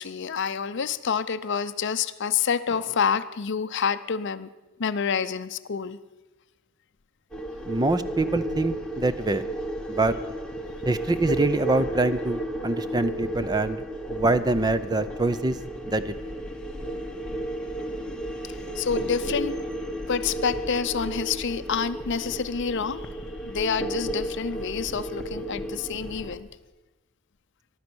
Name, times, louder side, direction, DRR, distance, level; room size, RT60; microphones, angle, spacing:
voice 1, 0.0-4.5 4.8-6.0 18.8-19.6 20.1-23.1 23.4-26.5, left 6 dB, 55° left, 13 dB, 0.6 m, -28 dB
sound 1, 7.3-26.4, right 1 dB, 5° left, 1.2 m, -33 dB
voice 2, 7.7-9.4 9.9-10.1 10.9-13.8 14.1-15.6 15.9-16.1, right 2 dB, 20° right, 12 dB, 0.5 m, -25 dB
15.0 x 12.0 x 6.1 m, 1.2 s
head